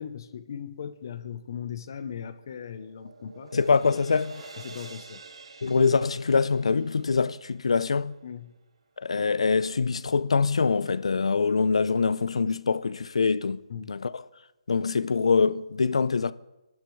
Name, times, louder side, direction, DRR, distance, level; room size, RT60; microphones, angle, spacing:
voice 1, 0.0-3.5 4.6-5.2 8.2-8.5 13.7-13.9, left 8 dB, 40° left, 0.7 m, -38 dB
sound 1, 2.0-8.3, right 3 dB, 75° right, 1.5 m, -48 dB
voice 2, 3.5-4.4 5.6-8.2 9.0-13.6 13.9-14.2 14.7-16.3, left 4 dB, 90° left, 0.5 m, -24 dB
28.0 x 12.0 x 3.2 m
hypercardioid pair, 170°, 3 cm